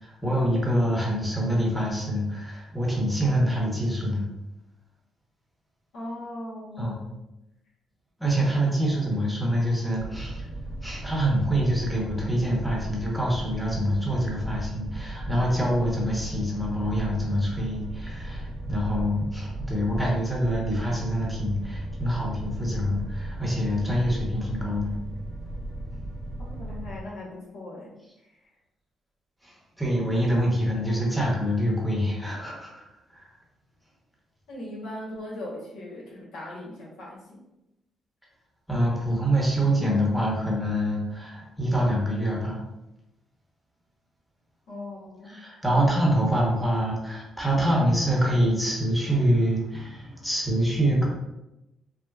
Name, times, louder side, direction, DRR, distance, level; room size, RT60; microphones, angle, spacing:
voice 1, 0.0-4.3 6.8-7.1 8.2-10.5 10.8-24.9 29.4-29.5 29.8-32.8 33.1-33.2 38.7-42.6 45.2-51.1, equal, ahead, -4 dB, 0.9 m, -25 dB
voice 2, 5.9-7.0 8.8-8.9 26.4-27.9 34.5-37.4 44.7-45.4, left 1 dB, 85° left, -5 dB, 1.0 m, -39 dB
sound 1, 9.9-27.0, right 1 dB, 20° right, 0.6 m, -36 dB
4.0 x 2.0 x 2.3 m, 0.93 s
cardioid pair, 90°, 0 cm